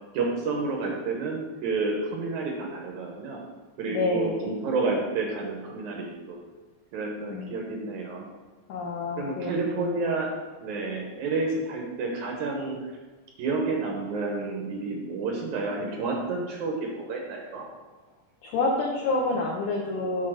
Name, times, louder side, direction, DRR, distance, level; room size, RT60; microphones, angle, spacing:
voice 1, 0.1-3.4 3.8-6.4 6.9-8.3 9.2-10.3 10.6-12.8 13.4-17.6, right 3 dB, 90° right, 0 dB, 1.6 m, -30 dB
voice 2, 3.9-4.5 7.3-7.6 8.7-10.0 18.4-20.3, left 2 dB, 85° left, -1 dB, 1.8 m, -28 dB
8.4 x 4.1 x 6.4 m, 1.3 s
omnidirectional pair, 5.0 m